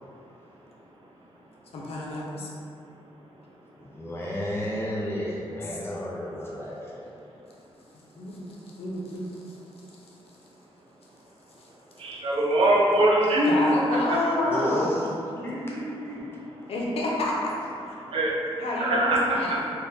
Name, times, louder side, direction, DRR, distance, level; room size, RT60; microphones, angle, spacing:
voice 1, 1.7-2.5 8.1-9.6 13.5-14.9 16.7-17.4 17.8-18.0 18.6-19.6, left 1 dB, 75° left, -4 dB, 0.6 m, -29 dB
voice 2, 3.8-7.1 8.5-8.7 14.5-16.2, equal, 25° left, -6 dB, 0.5 m, -33 dB
voice 3, 12.0-13.5 14.1-14.2 18.1-18.4 18.8-19.2 19.5-19.6, right 1 dB, 65° right, -3 dB, 0.5 m, -22 dB
3.5 x 2.2 x 2.7 m, 2.7 s
wide cardioid pair, 150°, 10 cm